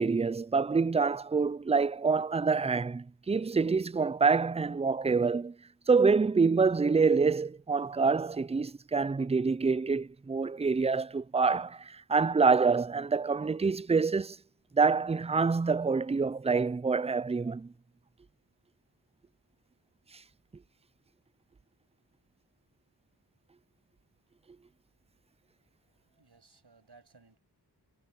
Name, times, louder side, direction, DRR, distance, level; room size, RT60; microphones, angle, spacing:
voice 1, 0.0-5.5 5.9-14.4 14.7-17.7, right 4 dB, 15° right, 0.3 m, -26 dB
voice 2, 25.8-27.4, right 4 dB, 70° right, 7.0 m, -60 dB
wide cardioid pair, 55°, 42 cm